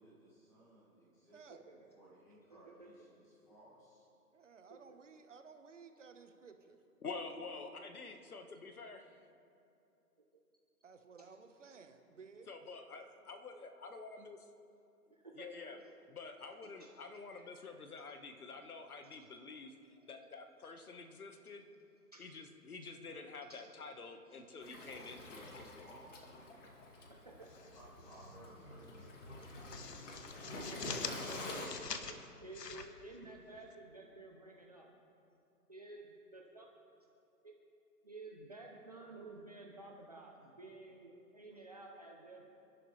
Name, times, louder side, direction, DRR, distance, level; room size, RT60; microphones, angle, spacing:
voice 1, 0.0-4.0 25.2-26.2 27.7-30.2, right 1 dB, 5° left, -7 dB, 1.8 m, -60 dB
voice 2, 1.3-1.6 4.3-6.8 7.1-7.4 10.8-12.6, right 5 dB, 50° right, 7 dB, 1.2 m, -57 dB
voice 3, 2.5-2.9 4.7-4.8 12.9-13.0 15.1-15.9 16.8-17.0 17.3-17.4 19.0-19.2 19.9-20.3 22.1-22.3 23.5-23.6 24.3-24.4 25.0-25.2 27.1-27.5 30.7-31.8 32.1-34.9 35.7-36.7 37.4-37.5 38.0-42.4, right 2 dB, 25° right, -1 dB, 0.8 m, -53 dB
voice 4, 7.0-9.2 12.5-14.4 15.4-15.8 16.1-19.7 20.1-21.6 22.2-25.6, left 4 dB, 65° left, 6 dB, 1.6 m, -48 dB
Waves surf, 24.6-31.7, left 2 dB, 50° left, 2.2 m, -48 dB
sound 1, 27.5-28.4 28.7-28.9 29.3-33.7, left 5 dB, 85° left, 1.3 m, -46 dB
28.5 x 11.0 x 3.3 m, 2.7 s
hypercardioid pair, 170°, 47 cm